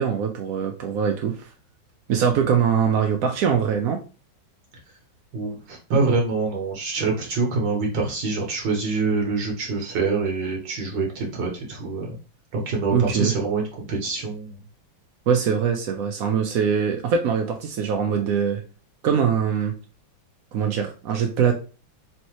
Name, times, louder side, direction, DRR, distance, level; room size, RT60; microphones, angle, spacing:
voice 1, 0.0-1.5 2.1-4.0 12.9-13.3 15.3-18.6 19.0-19.7 20.5-21.5, right 7 dB, 85° right, 0.7 m, -22 dB
voice 2, 5.3-12.2 12.5-14.6, right 4 dB, 65° right, 1.6 m, -25 dB
4.4 x 3.2 x 3.0 m
omnidirectional pair, 2.1 m